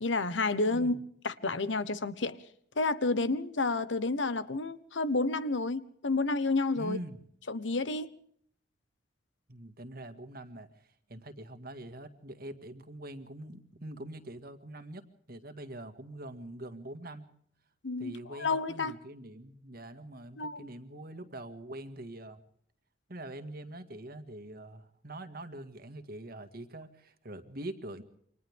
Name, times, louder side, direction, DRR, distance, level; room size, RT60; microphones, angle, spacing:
voice 1, 0.0-0.9 1.2-2.4 2.8-7.0 7.5-8.1 17.8-18.9 20.4-20.7, left 3 dB, 75° left, 1.2 m, -30 dB
voice 2, 0.7-1.0 6.8-7.2 9.5-10.7 11.1-17.3 18.0-22.4 23.1-28.0, right 1 dB, 55° right, 2.1 m, -44 dB
29.0 x 25.0 x 3.6 m
head